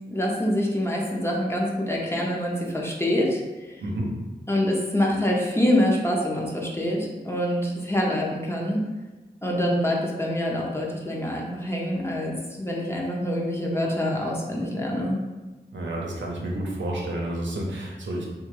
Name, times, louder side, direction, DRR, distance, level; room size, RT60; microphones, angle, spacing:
voice 1, 0.1-3.4 3.7-3.8 4.5-8.8 9.4-15.2, left 1 dB, 15° left, -2 dB, 0.7 m, -25 dB
voice 2, 3.8-4.1 15.7-18.2, right 1 dB, 85° right, -2 dB, 0.6 m, -30 dB
3.0 x 2.3 x 3.1 m, 1.2 s
cardioid pair, 40°, 19 cm